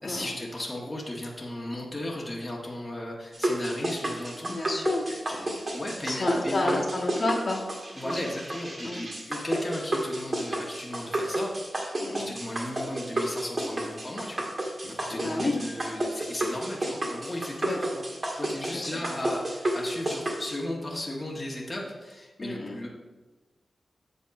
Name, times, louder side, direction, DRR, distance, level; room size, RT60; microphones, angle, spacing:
voice 1, 0.0-4.6 5.0-6.8 7.9-11.5 12.2-14.4 14.8-18.0 18.4-22.9, left 1 dB, 25° left, -3 dB, 1.5 m, -36 dB
sound 1, 3.3-20.6, right 1 dB, 40° right, 1.6 m, -31 dB
voice 2, 4.5-5.0 6.0-7.7 8.0-8.2 8.8-9.0 12.0-12.3 15.1-15.6 17.6-17.8 18.7-18.9 22.4-22.8, left 2 dB, 50° left, -3 dB, 1.6 m, -30 dB
8.2 x 3.5 x 6.4 m, 1.2 s
cardioid pair, 65°, 0 cm